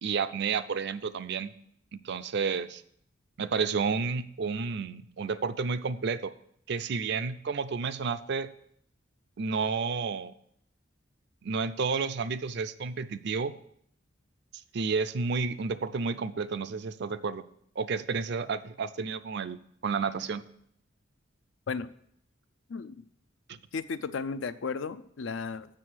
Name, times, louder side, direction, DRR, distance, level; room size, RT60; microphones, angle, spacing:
voice 1, 0.0-1.5 1.9-2.8 3.4-6.3 6.7-8.5 9.4-10.3 11.4-13.5 14.7-17.4 17.8-20.4 23.5-23.6, right 5 dB, 60° right, 14 dB, 0.5 m, -31 dB
voice 2, 23.7-25.7, left 5 dB, 70° left, 13 dB, 0.5 m, -34 dB
7.6 x 6.7 x 6.2 m, 0.69 s
head